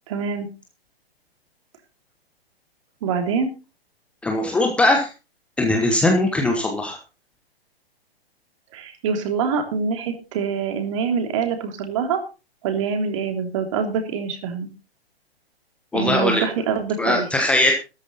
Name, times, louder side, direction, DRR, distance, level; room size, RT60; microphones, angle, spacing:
voice 1, 0.1-0.5 3.0-3.5 8.7-12.2 12.6-14.7 15.9-17.3, right 6 dB, 30° right, 5 dB, 3.3 m, -25 dB
voice 2, 4.2-5.1 5.6-7.0 15.9-16.4 17.0-17.7, left 2 dB, 5° left, 3 dB, 1.1 m, -20 dB
13.5 x 13.0 x 4.1 m, 0.31 s
figure-of-eight pair, 140°, 31 cm